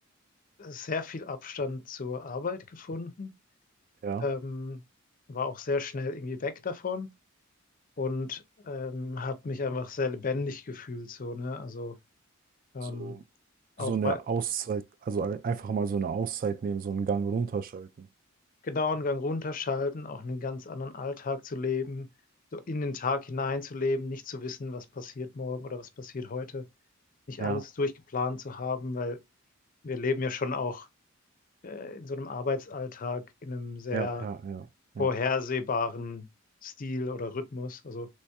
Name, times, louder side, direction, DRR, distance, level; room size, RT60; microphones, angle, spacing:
voice 1, 0.6-3.3 4.2-4.8 5.3-7.1 8.0-12.0 12.7-13.2 13.8-14.2 18.6-22.1 22.5-26.6 27.3-29.2 29.8-30.9 31.6-34.3 35.0-36.3 36.6-38.1, left 4 dB, 40° left, 0.5 m, -33 dB
voice 2, 12.8-13.2 13.8-18.1 27.4-27.6 33.9-34.7 35.0-35.1, right 5 dB, 45° right, 0.3 m, -31 dB
3.4 x 3.1 x 2.8 m
head